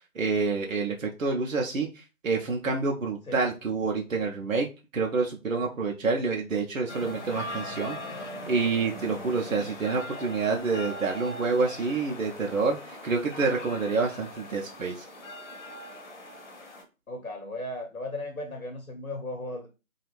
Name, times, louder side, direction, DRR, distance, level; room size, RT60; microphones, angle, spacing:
voice 1, 0.2-1.9 2.2-4.7 4.9-8.0 8.5-15.0, right 4 dB, 70° right, 1 dB, 0.6 m, -28 dB
sound 1, 6.9-16.8, left 1 dB, 55° left, 0.9 m, -40 dB
voice 2, 17.1-19.7, left 1 dB, 85° left, 3 dB, 0.8 m, -36 dB
2.5 x 2.3 x 3.0 m, 0.29 s
figure-of-eight pair, 165°, 41 cm